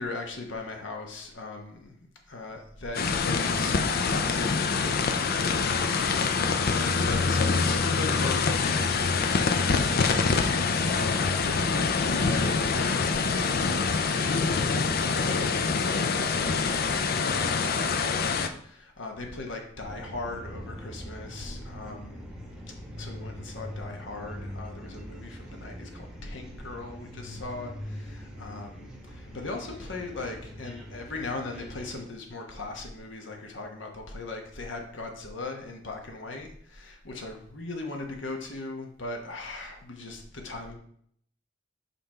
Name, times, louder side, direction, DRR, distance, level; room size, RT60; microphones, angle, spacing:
voice 1, 0.0-1.9 2.3-22.2 23.0-40.7, left 3 dB, 70° left, 2 dB, 1.3 m, -39 dB
sound 1, 2.9-18.5, left 4 dB, 55° left, 0.5 m, -25 dB
sound 2, 19.8-32.0, equal, 5° right, 1.2 m, -42 dB
5.6 x 5.2 x 4.3 m, 0.65 s
head